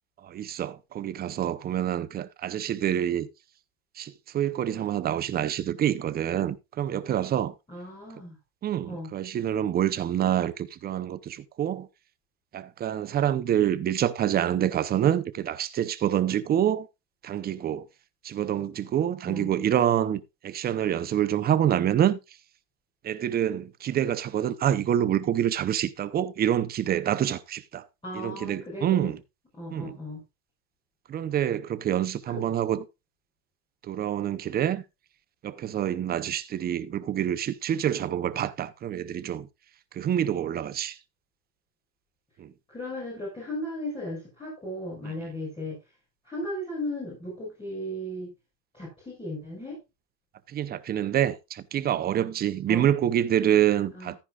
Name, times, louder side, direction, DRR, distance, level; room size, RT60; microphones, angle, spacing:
voice 1, 0.2-3.3 4.0-7.5 8.6-11.9 12.5-16.9 17.2-17.9 18.2-22.2 23.0-27.9 28.1-29.2 29.7-30.0 31.1-32.8 33.8-34.8 35.4-39.5 39.9-41.0 42.4-42.5 45.0-45.1 50.5-54.2, right 10 dB, 20° right, 0.6 m, -27 dB
voice 2, 7.7-8.4 8.8-9.1 19.3-19.5 28.0-29.1 29.6-30.2 32.3-32.4 42.7-45.8 46.2-48.3 48.7-49.8 52.7-53.0 53.9-54.2, left 1 dB, 10° left, 5.7 m, -36 dB
14.0 x 10.0 x 2.4 m
supercardioid pair, 140°, 49 cm